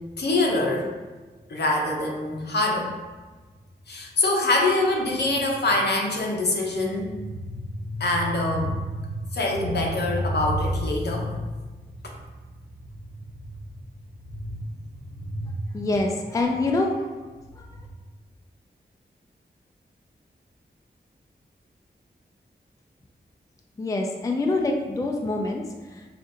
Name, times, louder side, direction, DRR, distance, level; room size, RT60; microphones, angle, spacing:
voice 1, 0.2-0.9 1.5-2.9 3.9-7.6 7.8-11.4 14.4-14.6 15.3-15.5, left 2 dB, 70° left, 0 dB, 0.7 m, -24 dB
voice 2, 15.7-17.1 17.6-17.7 23.8-26.1, left 2 dB, 20° left, 1 dB, 0.3 m, -26 dB
4.9 x 2.5 x 2.7 m, 1.3 s
wide cardioid pair, 95°, 18 cm